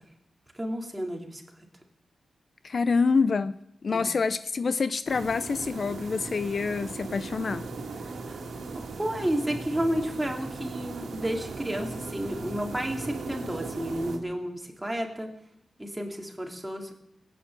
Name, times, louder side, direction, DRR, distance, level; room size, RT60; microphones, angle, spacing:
voice 1, 0.5-1.4 3.9-4.1 8.2-8.4 8.7-15.3 15.8-16.9, right 1 dB, 10° right, 2.5 m, -31 dB
voice 2, 2.6-3.6 3.8-7.6, left 4 dB, 50° left, 0.5 m, -26 dB
sound 1, 5.1-14.2, right 3 dB, 85° right, 2.0 m, -38 dB
19.0 x 9.2 x 7.6 m
wide cardioid pair, 110°, 0 cm